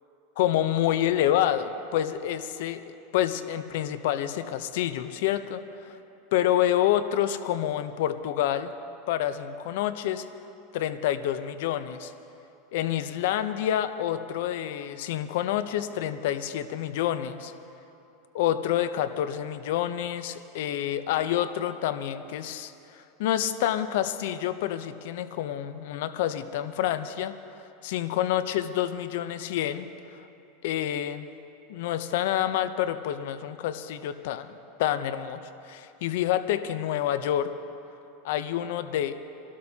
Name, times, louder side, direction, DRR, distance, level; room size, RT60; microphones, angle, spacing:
voice 1, 0.4-6.0 6.3-8.7 9.1-10.2 10.7-12.1 12.7-17.5 18.3-27.3 27.8-29.9 30.6-31.3 31.7-34.5 34.8-37.5 38.2-39.2, left 11 dB, 70° left, 11 dB, 0.7 m, -28 dB
26.0 x 12.5 x 2.8 m, 2.8 s
supercardioid pair, 120°, 0 cm